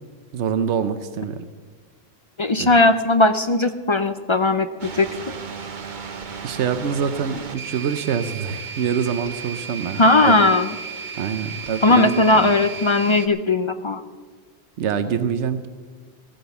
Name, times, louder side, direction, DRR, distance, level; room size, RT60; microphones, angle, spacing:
voice 1, 0.3-1.4 2.6-2.7 6.4-10.4 11.2-12.5 14.8-15.7, right 7 dB, 85° right, 10 dB, 1.0 m, -25 dB
voice 2, 2.4-5.1 10.0-10.6 11.8-14.0, left 2 dB, 40° left, 9 dB, 0.4 m, -18 dB
sound 1, 4.8-13.3, right 6 dB, 45° right, 1.1 m, -34 dB
15.5 x 9.2 x 6.9 m, 1.4 s
omnidirectional pair, 1.1 m